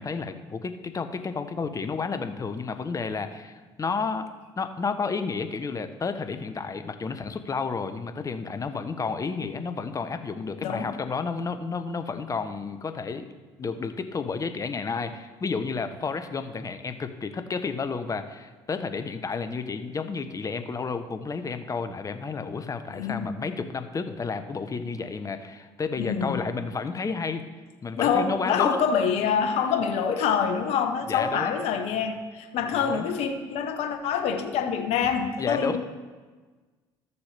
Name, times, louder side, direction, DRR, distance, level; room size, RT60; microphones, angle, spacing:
voice 1, 0.0-4.3 4.6-13.3 13.6-27.5 27.8-28.8 31.1-31.5 32.7-33.1 35.4-35.8, left 4 dB, 30° left, 9 dB, 0.8 m, -31 dB
voice 2, 22.9-23.3 26.0-26.4 28.0-35.8, left 7 dB, 70° left, 6 dB, 1.0 m, -26 dB
13.0 x 6.9 x 3.3 m, 1.4 s
hypercardioid pair, 65°, 11 cm